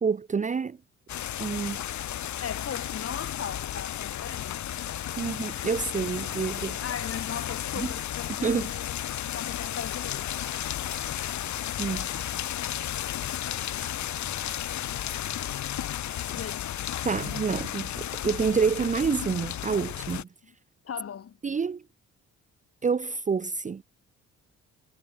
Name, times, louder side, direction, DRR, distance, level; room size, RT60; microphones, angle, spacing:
voice 1, 0.0-0.8 1.4-1.8 5.2-6.8 7.8-7.9 8.4-8.7 11.8-12.1 17.0-20.3 21.4-21.8 22.8-23.8, right 5 dB, 25° right, 0.6 m, -28 dB
sound 1, 1.1-20.2, left 11 dB, 70° left, 2.7 m, -33 dB
voice 2, 2.4-4.7 6.8-8.9 9.3-10.3 16.3-16.7 20.4-20.5 20.8-21.4, left 8 dB, 50° left, 2.8 m, -38 dB
sound 2, 10.8-17.4, left 4 dB, 25° left, 3.1 m, -51 dB
cardioid pair, 90°, 30 cm